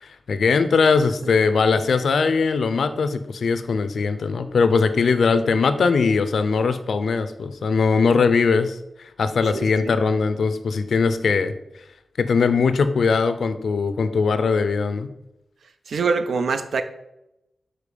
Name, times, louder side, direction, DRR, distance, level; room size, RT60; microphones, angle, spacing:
voice 1, 0.0-11.5 12.2-15.1, left 5 dB, 75° left, 11 dB, 0.5 m, -20 dB
voice 2, 15.9-16.8, right 4 dB, 75° right, 9 dB, 0.5 m, -23 dB
5.1 x 4.5 x 5.0 m, 0.88 s
wide cardioid pair, 155°, 0 cm